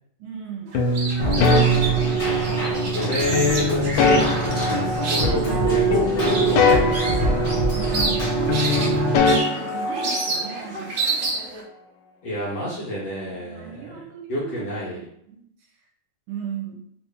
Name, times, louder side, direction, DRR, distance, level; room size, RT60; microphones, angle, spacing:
voice 1, 0.2-0.9 1.2-2.2 5.3-5.8 7.7-9.1 9.4-11.3 13.3-15.4 16.3-16.8, right 7 dB, 85° right, 0 dB, 1.6 m, -36 dB
sound 1, 0.7-2.7 3.3-5.6 5.9-8.2 8.5-10.5, left 3 dB, 85° left, 1.4 m, -22 dB
sound 2, 0.7-11.6, right 3 dB, 60° right, 0.8 m, -30 dB
Keyboard (musical), 1.2-9.2, right 3 dB, 35° left, 1.3 m, -24 dB
voice 2, 2.9-7.3 12.2-14.0 14.3-15.0, left 1 dB, 60° left, -7 dB, 1.3 m, -28 dB
3.0 x 2.9 x 3.3 m, 0.71 s
omnidirectional pair, 2.3 m